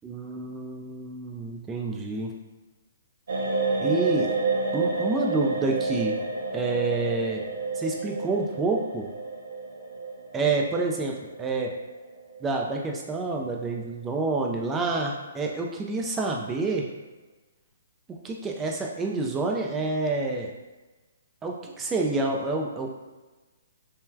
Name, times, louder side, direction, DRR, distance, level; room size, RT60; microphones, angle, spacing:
voice 1, 0.0-2.3 3.8-4.3 4.7-6.1 6.5-7.4 7.8-9.1 10.3-11.7 12.4-16.9 18.2-20.5 21.4-22.9, right 3 dB, 15° right, 0 dB, 0.4 m, -28 dB
sound 1, 3.3-13.2 13.5-13.7, right 3 dB, 70° right, 0.5 m, -30 dB
3.1 x 2.1 x 2.3 m, 1.2 s
hypercardioid pair, 135°, 0 cm